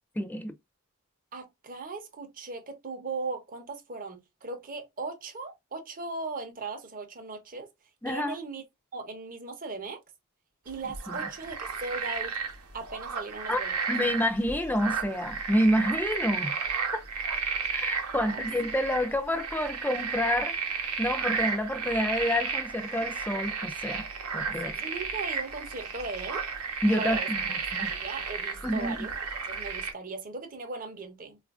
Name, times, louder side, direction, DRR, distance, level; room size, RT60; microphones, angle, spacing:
voice 1, 0.2-0.5 8.0-8.4 11.1-11.3 13.5-13.6 13.9-16.6 16.9-17.0 17.7-24.0 24.3-24.7 26.8-27.9 28.6-29.1, equal, 10° left, 0.3 m, -28 dB
voice 2, 1.3-7.7 8.1-8.6 8.9-10.0 10.6-12.4 12.7-13.8 18.2-18.5 24.6-26.5 26.9-27.3 27.8-31.4, right 3 dB, 40° right, 0.7 m, -38 dB
sound 1, 10.7-29.9, right 5 dB, 90° right, 0.8 m, -33 dB
4.0 x 2.4 x 2.3 m
head